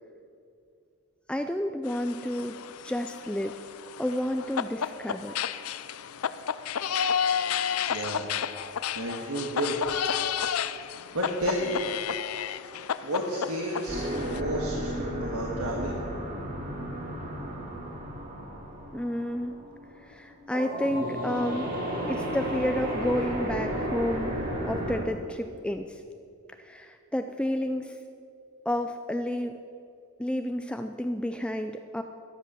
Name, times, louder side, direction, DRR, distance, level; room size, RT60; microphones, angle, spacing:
voice 1, 1.3-2.6 2.8-3.5 4.0-5.4 18.9-19.6 20.0-21.8 22.1-24.3 24.6-26.0 26.6-27.9 28.7-29.6 30.2-32.0, left 1 dB, 5° left, 7 dB, 0.4 m, -30 dB
sound 1, 1.9-14.4, left 8 dB, 85° left, 0.5 m, -32 dB
voice 2, 7.9-8.2 8.9-9.8 11.1-11.8 13.0-14.9 15.2-16.0, right 1 dB, 85° right, -2 dB, 1.7 m, -31 dB
sound 2, 13.9-25.0, equal, 40° right, 3.6 m, -33 dB
13.5 x 10.5 x 6.8 m, 2.5 s
head